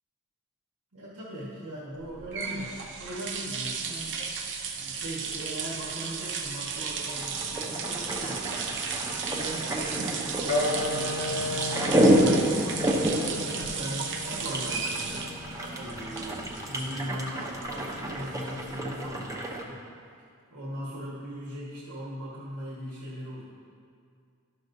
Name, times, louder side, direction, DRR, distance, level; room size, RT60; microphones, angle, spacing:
voice 1, 0.9-2.7 3.0-4.2 4.7-12.7 13.4-15.2 15.7-19.8 20.5-23.4, equal, 85° right, -7 dB, 1.4 m, -39 dB
sound 1, 2.0-19.0, right 5 dB, 55° right, 0.6 m, -35 dB
sound 2, 7.2-19.6, right 1 dB, 15° right, 0.6 m, -29 dB
Wind instrument woodwind instrument, 10.5-15.6, left 2 dB, 90° left, 1.2 m, -34 dB
11.5 x 6.2 x 2.6 m, 2.3 s
head